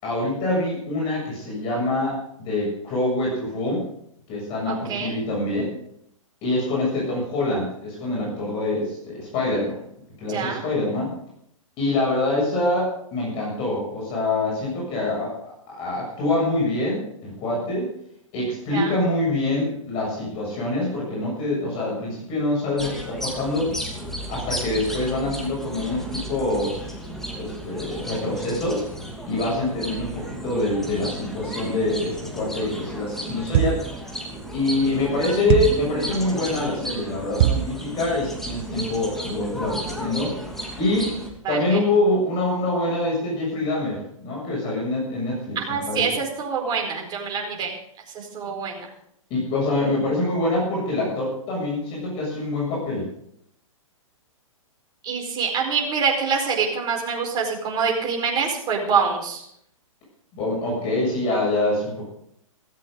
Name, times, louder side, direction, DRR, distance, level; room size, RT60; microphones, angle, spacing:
voice 1, 0.0-3.9 4.3-5.7 6.4-9.8 10.2-11.1 11.8-17.9 18.3-23.7 24.3-27.1 27.3-28.8 29.2-33.8 34.5-40.4 40.8-41.1 41.5-45.6 45.9-46.1 49.3-53.1 60.3-62.0, left 2 dB, 30° left, -3 dB, 7.3 m, -25 dB
voice 2, 4.7-5.1 10.3-10.6 18.7-18.9 41.4-41.8 45.5-47.7 48.1-48.9 55.0-59.5, right 5 dB, 25° right, 1 dB, 4.6 m, -25 dB
sound 1, 22.8-41.3, right 1 dB, ahead, 2.8 m, -34 dB
Metal thud, 33.5-34.0 35.5-35.9 37.4-37.8, right 12 dB, 45° right, 0.8 m, -21 dB
16.5 x 15.0 x 3.9 m, 0.71 s
figure-of-eight pair, 115°, 17 cm